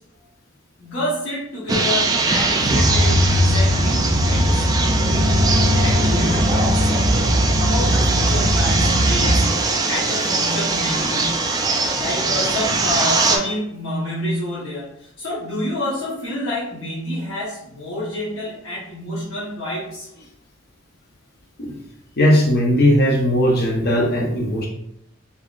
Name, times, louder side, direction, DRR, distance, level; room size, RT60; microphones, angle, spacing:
voice 1, 0.8-5.0 5.8-11.4 12.0-20.1, left 1 dB, 85° left, -8 dB, 1.1 m, -28 dB
sound 1, 1.7-13.4, right 3 dB, 20° right, 0.3 m, -22 dB
sound 2, 2.6-9.4, equal, 70° right, 0.5 m, -19 dB
voice 2, 22.2-24.7, equal, 55° left, -2 dB, 0.7 m, -17 dB
3.8 x 2.9 x 2.4 m, 0.72 s
head